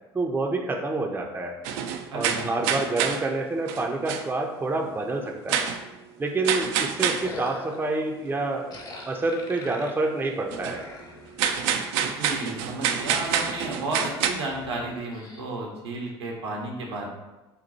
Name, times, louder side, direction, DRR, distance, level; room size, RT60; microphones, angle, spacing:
voice 1, 0.1-1.6 2.1-5.7 6.2-8.7 9.1-10.8, right 2 dB, 15° right, 2 dB, 0.6 m, -28 dB
sound 1, 1.6-3.3 3.7-4.3 5.5-5.8 6.4-7.3 10.5-10.8 11.4-14.3, right 8 dB, 60° right, 0.4 m, -27 dB
voice 2, 2.1-2.5 11.9-17.1, right 2 dB, 80° right, -1 dB, 1.0 m, -33 dB
sound 2, 6.6-8.0 8.7-11.7 12.2-12.6 12.9-15.4, left 3 dB, 30° left, 0.9 m, -44 dB
4.4 x 2.2 x 4.1 m, 1.1 s
hypercardioid pair, 70°, 14 cm